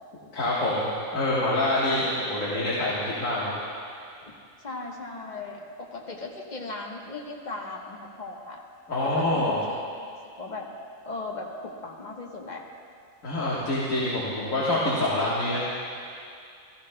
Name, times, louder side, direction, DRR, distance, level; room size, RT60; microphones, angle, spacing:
voice 1, 0.3-3.5 8.9-9.6 13.2-15.7, left 1 dB, 75° left, -7 dB, 1.8 m, -26 dB
voice 2, 4.6-8.6 9.0-10.6 11.0-12.6, left 3 dB, 35° left, -1 dB, 1.2 m, -38 dB
15.5 x 14.5 x 2.2 m, 2.4 s
omnidirectional pair, 1.4 m